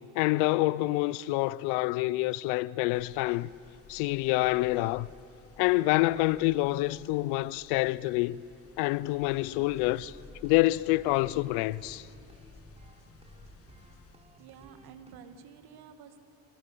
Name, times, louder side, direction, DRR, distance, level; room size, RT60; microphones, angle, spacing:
voice 1, 0.0-3.5 3.9-5.1 5.6-8.4 8.8-10.1 10.4-12.1, left 19 dB, 80° left, 0.6 m, -27 dB
sound 1, 2.9-14.2, left 4 dB, 35° left, 1.7 m, -55 dB
sound 2, 9.2-15.1, right 1 dB, 15° right, 3.5 m, -56 dB
voice 2, 14.4-16.2, right 7 dB, 65° right, 2.0 m, -50 dB
26.0 x 21.5 x 6.8 m
supercardioid pair, 85°, 39 cm